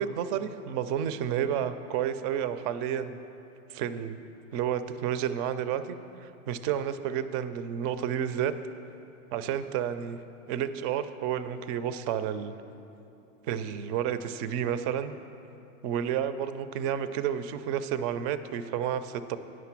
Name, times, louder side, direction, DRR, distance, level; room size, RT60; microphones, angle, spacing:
voice 1, 0.0-3.2 3.7-4.2 4.5-6.0 6.2-8.5 9.3-10.2 10.5-12.5 13.4-15.1 15.8-19.4, right 9 dB, 40° right, 12 dB, 0.4 m, -30 dB
9.2 x 6.0 x 5.9 m, 2.8 s
hypercardioid pair, 115°, 40 cm